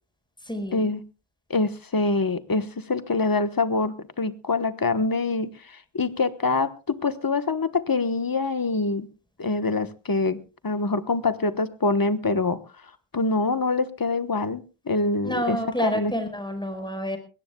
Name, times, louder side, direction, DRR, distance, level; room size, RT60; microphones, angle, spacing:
voice 1, 0.5-0.9 15.2-17.2, equal, 10° left, 6 dB, 5.0 m, -28 dB
voice 2, 1.5-5.5 5.9-9.1 9.4-12.6 13.1-15.6 15.8-16.1, left 3 dB, 45° left, 11 dB, 1.3 m, -25 dB
21.5 x 17.5 x 2.3 m, 0.32 s
wide cardioid pair, 50°, 50 cm